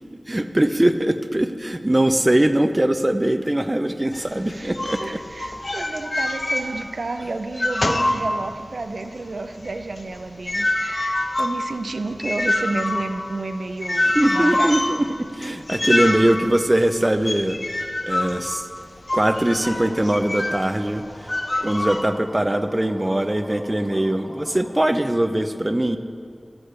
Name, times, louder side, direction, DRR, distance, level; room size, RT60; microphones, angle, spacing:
voice 1, 0.3-5.2 14.1-17.6 18.0-18.7 19.1-21.0 21.6-26.0, right 1 dB, 25° right, 9 dB, 0.6 m, -21 dB
sound 1, 4.1-7.1 7.4-8.9 9.2-20.7 21.3-22.0, left 1 dB, 50° left, 0.8 m, -26 dB
voice 2, 5.0-14.8 21.5-21.7, right 2 dB, 85° right, 8 dB, 0.6 m, -31 dB
sound 2, 19.3-25.0, equal, 5° left, 2.8 m, -43 dB
12.5 x 8.5 x 6.6 m, 2.3 s
wide cardioid pair, 65°, 0 cm